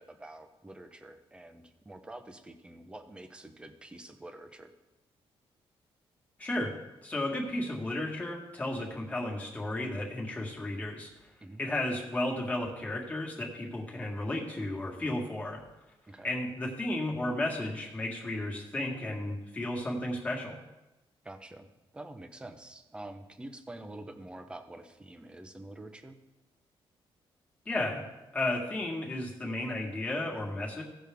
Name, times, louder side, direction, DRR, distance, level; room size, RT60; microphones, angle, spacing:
voice 1, 0.0-4.7 11.4-11.6 16.1-16.3 21.2-21.7 21.9-26.2, right 1 dB, 10° right, 7 dB, 0.7 m, -47 dB
voice 2, 6.4-11.1 11.6-15.6 16.2-20.6 27.6-28.1 28.3-30.8, left 1 dB, 15° left, -2 dB, 1.7 m, -33 dB
16.5 x 6.3 x 3.5 m, 1.0 s
wide cardioid pair, 175°, 10 cm